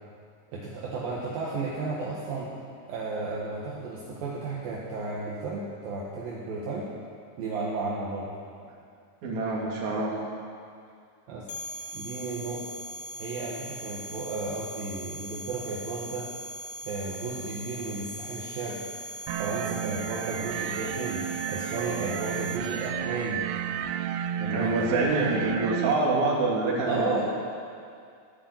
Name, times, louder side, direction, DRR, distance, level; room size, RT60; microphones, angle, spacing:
voice 1, 0.5-2.5 2.9-6.9 7.4-8.3 11.3-11.5 11.9-12.6 13.2-16.3 16.8-18.8 19.4-23.4 24.4-25.3 26.8-27.2, right 3 dB, 65° right, -5 dB, 3.3 m, -33 dB
voice 2, 9.2-10.2 24.5-27.2, right 3 dB, 50° right, -3 dB, 3.7 m, -26 dB
sound 1, 11.5-22.9, equal, 45° left, 2.5 m, -40 dB
sound 2, 19.3-25.9, right 10 dB, 85° right, 2.6 m, -32 dB
16.0 x 11.0 x 7.9 m, 2.3 s
omnidirectional pair, 4.6 m